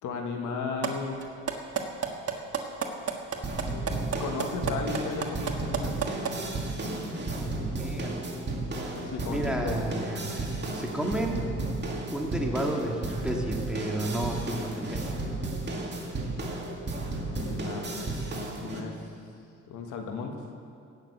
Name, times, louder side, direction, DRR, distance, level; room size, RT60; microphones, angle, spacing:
voice 1, 0.0-1.2 4.2-6.0 8.9-9.8 17.0-18.0 18.6-19.1 19.7-20.4, left 4 dB, 80° left, 3 dB, 1.6 m, -35 dB
sound 1, 0.8-0.9 1.2-6.3, right 7 dB, 50° right, 1.5 m, -29 dB
sound 2, 3.4-18.8, right 2 dB, 35° right, 2.3 m, -33 dB
voice 2, 7.4-8.2 9.3-10.5 10.8-11.5 12.1-15.1, right 1 dB, 5° right, 0 dB, 1.9 m, -32 dB
17.0 x 6.7 x 8.0 m, 2.6 s
cardioid pair, 90°, 30 cm